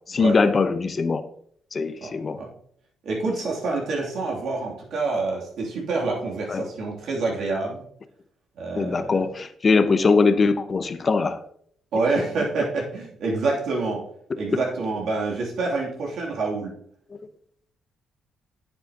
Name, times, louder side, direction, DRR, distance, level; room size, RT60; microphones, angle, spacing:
voice 1, 0.1-1.2 1.7-2.4 6.5-6.6 8.8-11.4, left 4 dB, 35° left, 11 dB, 0.8 m, -21 dB
voice 2, 2.0-2.5 3.0-7.8 8.6-9.2 11.9-14.0 14.4-16.8, right 3 dB, 70° right, -3 dB, 2.9 m, -27 dB
9.1 x 8.1 x 2.9 m, 0.64 s
cardioid pair, 90°, 0 cm